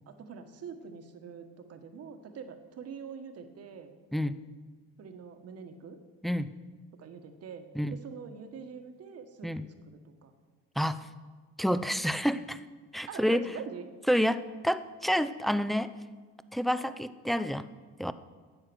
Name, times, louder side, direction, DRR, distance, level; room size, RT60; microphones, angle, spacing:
voice 1, 0.1-4.0 5.0-6.0 7.0-9.5 9.8-10.3 13.1-13.9, right 6 dB, 55° right, 7 dB, 1.4 m, -44 dB
voice 2, 10.8-11.1 11.6-12.6 12.9-13.4 14.1-15.9 16.5-17.7 18.0-18.1, equal, ahead, 13 dB, 0.5 m, -28 dB
12.5 x 8.2 x 6.2 m, 1.5 s
cardioid pair, 90°, 29 cm